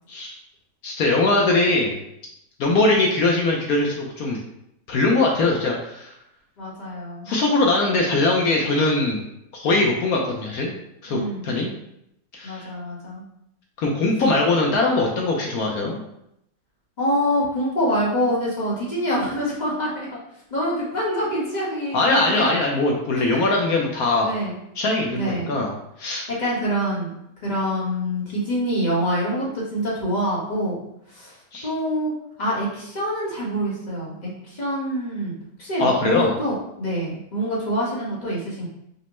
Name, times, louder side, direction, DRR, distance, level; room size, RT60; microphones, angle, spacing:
voice 1, 0.8-2.0 2.6-4.4 4.9-6.1 7.3-9.2 9.5-10.7 11.0-11.7 12.3-12.7 13.8-16.0 21.9-24.3 24.8-25.7 26.0-26.3 31.5-31.7 35.8-36.3, left 2 dB, 70° left, -1 dB, 1.0 m, -21 dB
voice 2, 6.6-7.3 11.1-11.5 12.4-13.2 17.0-20.2 20.5-22.6 24.2-24.6 25.1-25.5 26.3-27.1 27.4-30.8 31.1-31.4 31.6-32.1 32.4-38.7, equal, 30° left, -6 dB, 0.9 m, -26 dB
5.1 x 2.1 x 3.0 m, 0.79 s
omnidirectional pair, 1.9 m